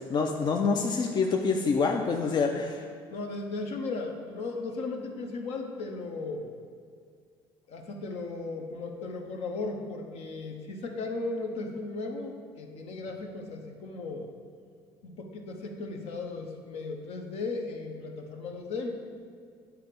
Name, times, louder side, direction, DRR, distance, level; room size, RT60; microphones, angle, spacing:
voice 1, 0.1-2.8, left 4 dB, 40° left, 2 dB, 0.5 m, -26 dB
voice 2, 3.1-6.5 7.7-14.3 15.0-19.0, left 3 dB, 65° left, 3 dB, 0.9 m, -36 dB
8.5 x 3.4 x 5.2 m, 2.1 s
supercardioid pair, 90°, 11 cm